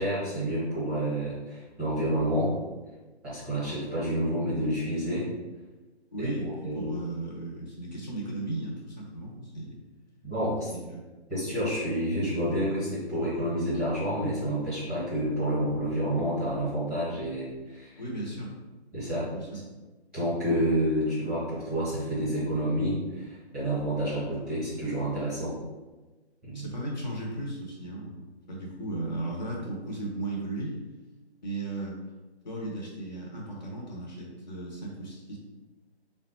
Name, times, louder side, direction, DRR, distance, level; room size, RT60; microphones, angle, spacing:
voice 1, 0.0-2.5 3.2-5.3 6.2-6.3 6.6-6.9 10.2-10.7 11.3-18.0 18.9-19.3 20.1-25.5 26.4-26.7, equal, 5° right, -13 dB, 0.8 m, -29 dB
voice 2, 6.1-9.7 10.7-11.0 18.0-18.6 19.3-19.6 26.5-30.8 31.4-32.0 32.4-35.4, right 2 dB, 40° left, -3 dB, 0.7 m, -36 dB
3.5 x 2.2 x 4.2 m, 1.2 s
figure-of-eight pair, 155°, 33 cm